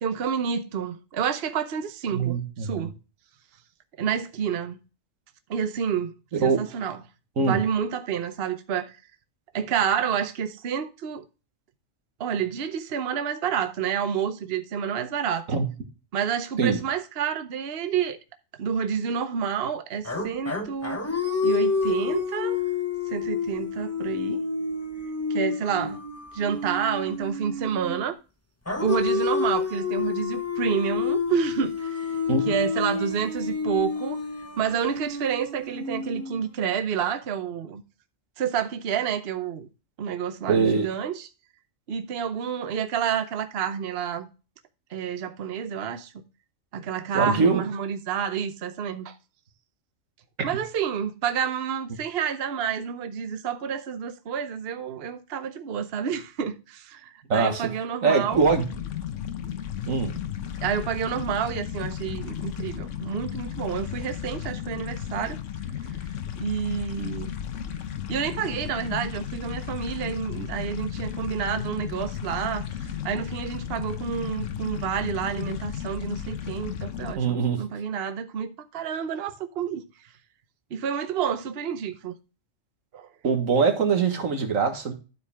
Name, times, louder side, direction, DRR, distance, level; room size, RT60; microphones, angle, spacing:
voice 1, 0.0-2.9 4.0-4.8 5.5-6.1 6.4-7.0 7.4-9.0 9.5-11.2 12.2-15.5 16.1-18.2 18.6-21.1 21.4-22.6 23.1-24.4 25.3-26.0 26.3-28.2 28.8-34.2 34.6-37.8 38.4-39.7 40.0-41.3 41.9-44.3 44.9-46.1 46.7-49.2 50.4-58.4 60.6-65.4 66.4-67.3 68.1-79.8 80.7-82.1 82.9-83.1, right 7 dB, 55° right, 0.9 m, -29 dB
voice 2, 2.1-2.9 6.3-6.6 7.4-7.6 15.5-15.7 16.6-16.8 32.3-32.4 40.5-40.9 47.1-47.6 50.4-50.5 57.3-57.7 58.0-58.7 59.9-60.1 77.2-77.6 83.2-84.9, right 5 dB, 85° right, 1.8 m, -23 dB
sound 1, 20.0-28.1 28.7-36.7, left 4 dB, 15° left, 0.9 m, -29 dB
sound 2, 58.3-77.1, left 9 dB, 70° left, 1.2 m, -34 dB
12.0 x 4.8 x 3.4 m
omnidirectional pair, 1.4 m